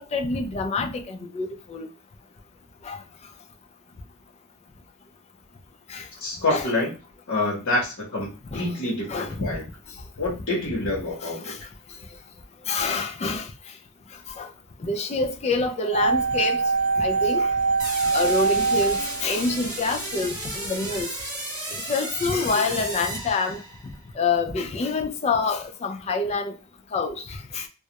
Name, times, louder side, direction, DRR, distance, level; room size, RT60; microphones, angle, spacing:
voice 1, 0.1-1.9 2.8-3.0 5.9-6.0 6.5-6.7 8.5-8.7 9.1-9.5 11.2-11.6 12.7-13.5 14.4-14.5 14.8-16.6 17.0-17.5 18.1-21.1 21.9-23.6 24.2-26.5 26.9-27.7, left 3 dB, 30° left, 0.3 m, -26 dB
voice 2, 6.2-6.9 7.3-9.6 10.2-11.5, left 2 dB, 60° left, 0.9 m, -27 dB
sound 1, 15.9-20.0 20.3-20.4, right 4 dB, 60° right, 0.3 m, -23 dB
sound 2, 17.8-24.0, right 1 dB, 20° right, 0.9 m, -34 dB
2.3 x 2.0 x 2.7 m
head